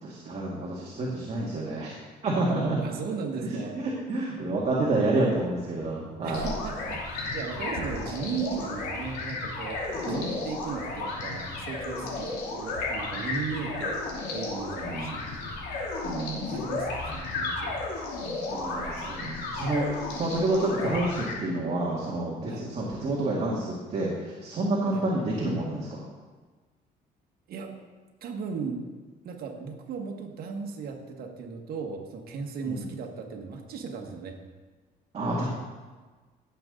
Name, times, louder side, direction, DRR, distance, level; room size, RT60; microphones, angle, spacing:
voice 1, 0.0-1.9 2.2-2.8 3.4-3.5 3.8-6.4 10.1-10.3 14.8-15.2 16.0-16.6 18.5-26.0 32.7-32.8 35.1-35.4, right 2 dB, 40° right, -4 dB, 2.1 m, -29 dB
voice 2, 2.8-3.8 6.2-14.0 14.3-15.5 16.4-17.8 22.5-22.7 24.9-25.1 27.5-27.7 28.2-28.8 29.2-34.4, right 5 dB, 65° right, 2 dB, 1.8 m, -36 dB
sound 1, 6.3-21.3, left 3 dB, 85° left, 3.1 m, -33 dB
16.5 x 7.2 x 4.0 m, 1.4 s
cardioid pair, 110°, 17 cm